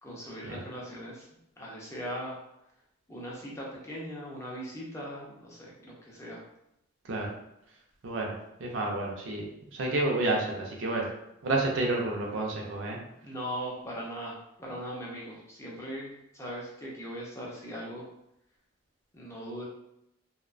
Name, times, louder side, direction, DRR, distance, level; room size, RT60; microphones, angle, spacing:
voice 1, 0.0-1.2 1.6-2.4 3.1-6.4 13.2-18.0 19.1-19.6, equal, 15° left, -4 dB, 0.5 m, -39 dB
voice 2, 8.0-9.5 9.7-11.1 11.4-13.0, right 2 dB, 65° right, 0 dB, 0.5 m, -30 dB
2.5 x 2.1 x 2.4 m, 0.81 s
head